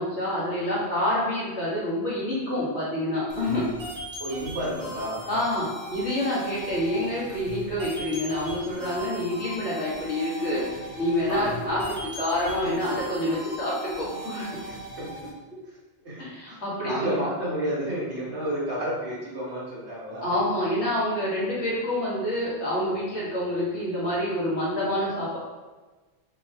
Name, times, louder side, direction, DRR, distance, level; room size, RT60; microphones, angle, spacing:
voice 1, 0.0-3.6 5.3-10.6 11.0-14.6 16.2-17.2 20.2-25.4, left 1 dB, 80° left, -7 dB, 1.9 m, -27 dB
sound 1, 3.3-15.3, right 1 dB, 70° right, 1.5 m, -39 dB
voice 2, 4.2-5.3 11.3-11.5 12.6-12.7 14.7-15.3 16.0-20.3, right 1 dB, 90° right, -6 dB, 1.8 m, -31 dB
5.2 x 3.4 x 2.8 m, 1.2 s
omnidirectional pair, 1.1 m